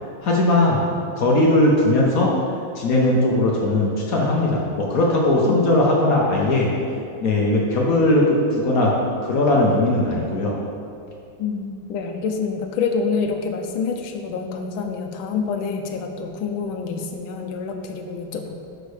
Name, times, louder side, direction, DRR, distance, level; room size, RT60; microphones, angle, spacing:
voice 1, 0.2-0.8 1.2-2.3 2.7-6.7 7.2-8.9 9.2-10.5, left 1 dB, 55° left, -2 dB, 1.1 m, -19 dB
voice 2, 11.4-18.5, left 5 dB, 85° left, 5 dB, 1.4 m, -27 dB
5.2 x 4.9 x 6.4 m, 2.4 s
omnidirectional pair, 2.2 m